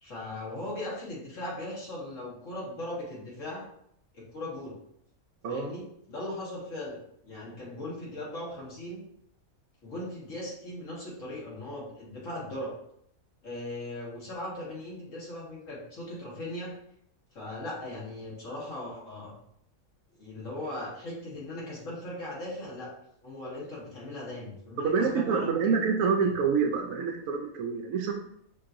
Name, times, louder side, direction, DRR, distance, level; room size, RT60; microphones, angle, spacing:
voice 1, 0.0-3.6 4.1-4.7 5.5-9.0 9.8-12.7 13.4-16.7 17.3-19.3 20.2-22.9 23.2-25.7, left 1 dB, 60° left, -5 dB, 1.7 m, -38 dB
voice 2, 24.8-28.2, right 5 dB, 70° right, 2 dB, 0.9 m, -27 dB
5.2 x 2.9 x 2.5 m, 0.72 s
omnidirectional pair, 1.6 m